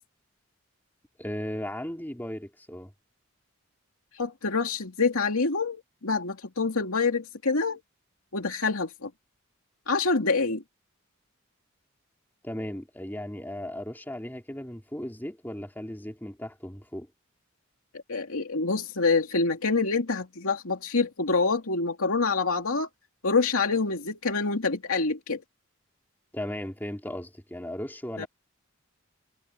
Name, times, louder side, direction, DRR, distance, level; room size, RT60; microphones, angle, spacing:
voice 1, 1.2-2.9 12.4-17.1 26.3-28.3, left 1 dB, 10° left, 3.0 m, -36 dB
voice 2, 4.1-7.8 8.3-9.1 9.9-10.6 18.1-22.9 23.2-25.4 28.2-28.3, left 4 dB, 85° left, 2.5 m, -26 dB
head